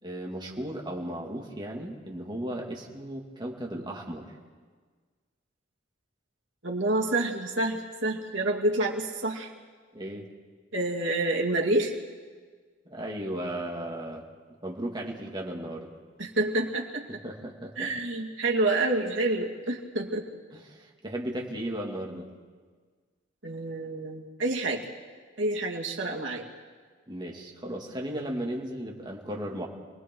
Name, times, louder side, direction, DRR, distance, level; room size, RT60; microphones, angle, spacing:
voice 1, 0.0-4.3 9.9-10.3 12.9-14.2 14.6-15.9 17.2-17.9 20.5-22.3 27.1-29.7, right 1 dB, 25° right, -1 dB, 2.4 m, -35 dB
voice 2, 6.6-9.5 10.7-11.9 16.2-17.1 17.8-20.3 23.4-24.8 25.4-26.5, right 2 dB, 80° right, -1 dB, 2.4 m, -28 dB
28.0 x 19.5 x 4.7 m, 1.5 s
head